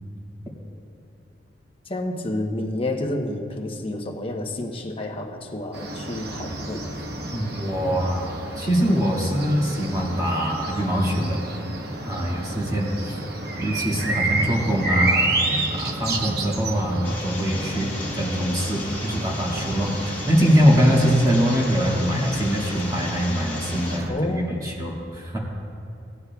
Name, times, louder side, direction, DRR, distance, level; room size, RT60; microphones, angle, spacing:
voice 1, 1.9-6.8 24.1-24.6, left 1 dB, 30° left, 1 dB, 1.0 m, -29 dB
sound 1, 5.7-24.1, right 2 dB, 60° right, 1.0 m, -30 dB
voice 2, 7.3-11.4 12.0-13.2 13.6-15.3 15.7-25.4, equal, 20° right, -4 dB, 2.0 m, -23 dB
sound 2, 17.0-24.0, left 2 dB, 10° left, 1.8 m, -36 dB
18.0 x 9.7 x 2.3 m, 2.7 s
head